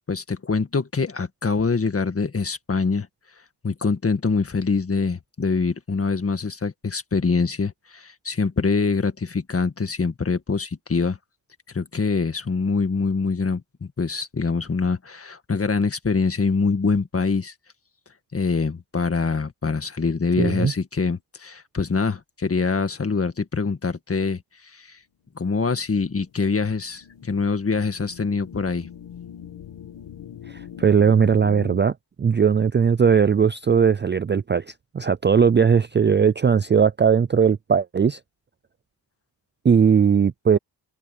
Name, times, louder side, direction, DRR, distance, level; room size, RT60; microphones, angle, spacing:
voice 1, 0.1-3.1 3.6-11.2 11.7-17.5 18.3-25.0 25.4-28.9, left 4 dB, 30° left, 1.8 m, -24 dB
voice 2, 20.4-20.7 30.5-38.2 39.6-40.6, right 6 dB, 25° right, 0.4 m, -19 dB
sound 1, 25.7-31.8, left 9 dB, 90° left, 2.6 m, -41 dB
wide cardioid pair, 105°, 43 cm